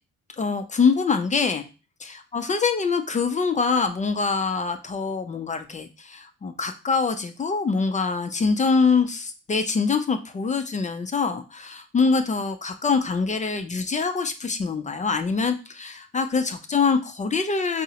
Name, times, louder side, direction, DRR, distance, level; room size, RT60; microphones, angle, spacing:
voice 1, 0.4-1.6 2.3-17.8, left 5 dB, 25° left, 8 dB, 0.4 m, -24 dB
4.6 x 2.0 x 2.8 m, 0.31 s
cardioid pair, 90°, 30 cm